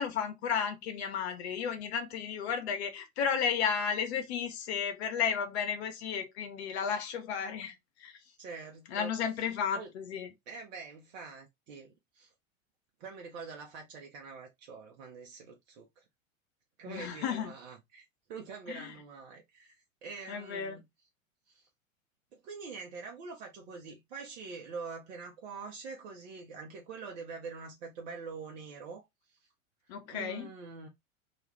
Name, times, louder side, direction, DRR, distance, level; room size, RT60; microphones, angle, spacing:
voice 1, 0.0-7.7 8.0-8.2 8.9-10.3 16.9-17.5 18.7-18.9 20.3-20.8 29.9-30.5, left 7 dB, 50° left, 0.8 m, -33 dB
voice 2, 8.4-9.1 9.7-9.9 10.5-12.3 13.0-16.0 16.8-18.0 18.3-20.9 21.5-21.7 22.3-29.4 30.1-30.9, right 4 dB, 55° right, 0.8 m, -45 dB
2.4 x 2.3 x 3.2 m
figure-of-eight pair, 95°, 41 cm